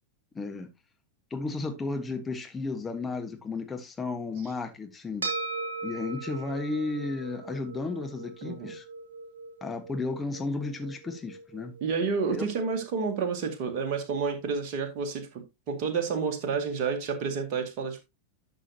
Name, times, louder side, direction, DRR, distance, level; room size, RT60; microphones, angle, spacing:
voice 1, 0.3-0.7 1.3-5.3 5.8-8.8 9.6-11.7 12.3-12.4, left 3 dB, 15° left, 1.3 m, -33 dB
sound 1, 5.2-13.8, right 3 dB, 70° right, 1.9 m, -40 dB
voice 2, 8.4-8.7 11.8-18.0, right 5 dB, 45° right, 2.1 m, -30 dB
11.5 x 6.3 x 2.8 m
figure-of-eight pair, 90°, 0 cm